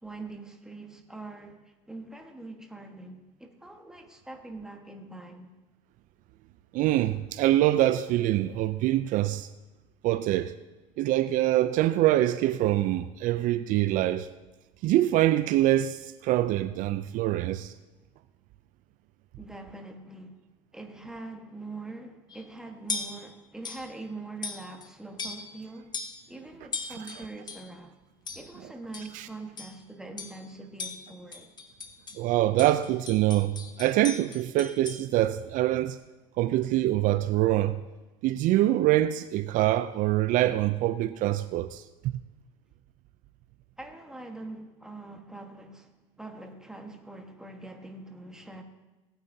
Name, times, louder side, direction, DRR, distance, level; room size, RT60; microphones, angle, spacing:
voice 1, 0.0-5.5 19.4-20.4 20.7-25.9 26.3-28.0 28.3-31.5 43.8-48.6, right 2 dB, 5° right, 1.3 m, -43 dB
voice 2, 6.7-9.5 10.0-10.5 11.0-14.3 14.8-17.7 29.1-29.3 32.2-36.0 36.4-37.8 38.2-41.8, right 14 dB, 60° right, 0.4 m, -24 dB
sound 1, 22.3-22.5 22.9-23.3 23.6-23.9 24.4-24.9 25.2-25.6 25.9-26.3 26.7-27.7 28.3-28.6 28.9-29.2 29.6-29.8 30.2-30.5 30.8-32.2 32.6-35.1, left 4 dB, 30° left, 1.1 m, -38 dB
18.0 x 8.9 x 2.7 m
supercardioid pair, 95°, 15 cm